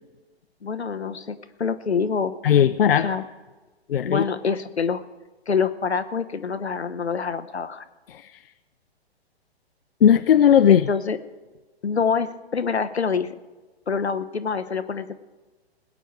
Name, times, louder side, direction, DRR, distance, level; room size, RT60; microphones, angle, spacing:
voice 1, 0.6-2.3 3.0-3.2 4.0-5.0 5.5-7.8 10.7-11.2 11.8-13.4 13.9-15.2, left 5 dB, 75° left, 11 dB, 0.9 m, -26 dB
voice 2, 2.4-3.1 3.9-4.2 8.1-8.4 10.0-10.9, left 9 dB, 60° left, 12 dB, 0.5 m, -17 dB
20.0 x 9.0 x 4.8 m, 1.3 s
figure-of-eight pair, 120°, 32 cm